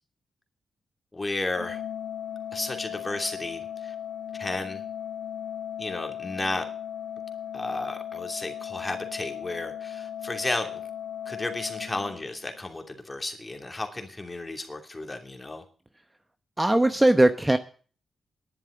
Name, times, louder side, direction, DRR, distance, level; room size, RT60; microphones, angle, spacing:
voice 1, 1.1-1.8 2.5-3.9 4.3-4.8 5.8-6.6 7.5-10.8 11.3-15.6, left 2 dB, 25° left, 5 dB, 2.9 m, -33 dB
Organ, 1.5-12.6, left 9 dB, 85° left, 1.8 m, -37 dB
voice 2, 16.6-17.6, right 1 dB, 15° right, 9 dB, 0.9 m, -19 dB
11.0 x 7.4 x 9.6 m, 0.41 s
cardioid pair, 70°, 0 cm